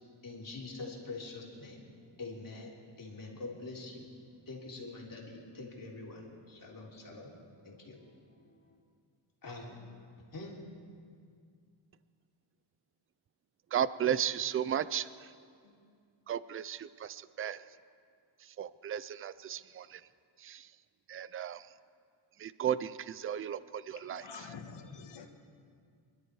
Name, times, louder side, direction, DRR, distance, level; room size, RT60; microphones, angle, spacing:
voice 1, 0.2-4.1 4.4-7.3 7.6-8.0 8.4-8.7 9.4-9.9 10.3-10.6 15.6-15.7, left 3 dB, 40° left, -3 dB, 3.3 m, -45 dB
voice 2, 13.7-15.1 16.3-17.6 18.6-20.0 20.4-20.7 21.1-21.6 22.4-24.2, right 9 dB, 30° right, 16 dB, 0.4 m, -34 dB
voice 3, 23.9-25.3, left 5 dB, 60° left, 5 dB, 1.6 m, -47 dB
24.5 x 12.0 x 4.8 m, 2.2 s
cardioid pair, 110°, 49 cm